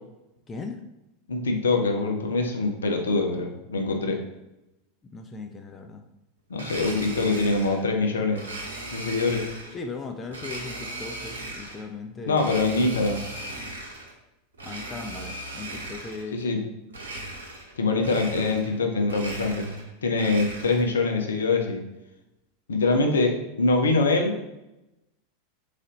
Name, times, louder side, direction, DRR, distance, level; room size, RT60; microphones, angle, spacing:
voice 1, 0.5-0.8 5.1-6.0 9.7-12.6 14.6-16.4 22.9-23.0, left 4 dB, 20° left, 5 dB, 0.5 m, -38 dB
voice 2, 1.3-4.2 6.5-8.4 8.9-9.4 12.3-13.2 16.3-16.6 17.8-21.8 22.7-23.3 23.6-24.4, left 3 dB, 70° left, 3 dB, 0.7 m, -24 dB
Domestic sounds home sounds, 6.5-7.9 8.4-9.8 10.3-11.9 12.3-14.1 14.5-16.3 16.9-17.7 18.0-18.8 19.0-20.9, right 1 dB, 75° right, 0.8 m, -38 dB
3.9 x 3.3 x 4.0 m, 0.93 s
figure-of-eight pair, 85°, 0 cm